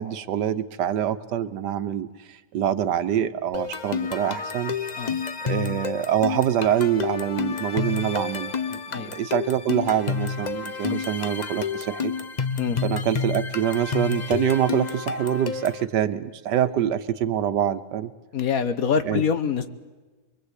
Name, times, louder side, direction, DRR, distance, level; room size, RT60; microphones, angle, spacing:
voice 1, 0.0-2.1 2.5-4.7 5.4-12.1 12.8-18.1 19.1-19.2, right 10 dB, 90° right, 12 dB, 1.5 m, -25 dB
sound 1, 3.5-15.8, left 5 dB, 40° left, 0.6 m, -30 dB
voice 2, 18.3-19.7, left 6 dB, 60° left, 11 dB, 1.5 m, -25 dB
24.0 x 22.5 x 8.3 m, 1.3 s
omnidirectional pair, 1.8 m